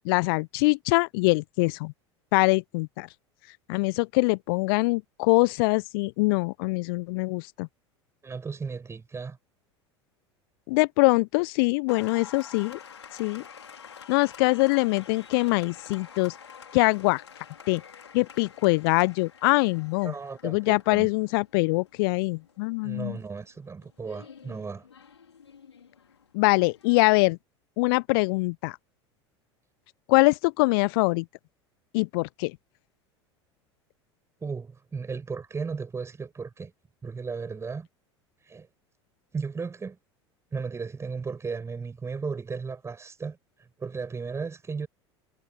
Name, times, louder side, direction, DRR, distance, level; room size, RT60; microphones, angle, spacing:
voice 1, 0.0-1.9 2.3-3.1 3.7-7.7 10.7-12.8 13.2-13.4 14.1-16.3 16.7-17.2 17.7-17.8 18.1-20.1 20.4-23.2 26.3-27.4 27.8-28.8 30.1-31.2 31.9-32.6, left 27 dB, 55° left, 1.1 m, -23 dB
voice 2, 8.2-9.4 20.0-21.1 22.8-24.9 34.4-36.7 37.0-37.9 38.4-38.7 39.3-40.0 40.5-44.9, right 5 dB, 20° right, 7.6 m, -35 dB
Applause, 11.9-27.2, left 7 dB, 75° left, 5.0 m, -49 dB
figure-of-eight pair, 75°, 15 cm